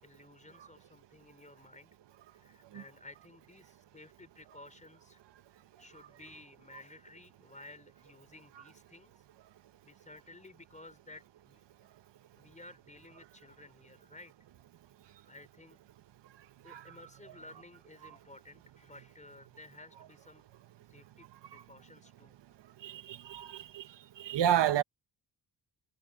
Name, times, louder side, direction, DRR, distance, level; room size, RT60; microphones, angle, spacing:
voice 1, 0.0-1.9 2.3-5.2 5.8-9.2 9.8-11.6 12.4-14.3 15.1-15.8 16.6-20.4 20.9-22.4, left 2 dB, 15° left, 4.8 m, -54 dB
voice 2, 22.8-23.9 24.2-24.8, right 10 dB, 80° right, 1.6 m, -31 dB
cardioid pair, 80°, 43 cm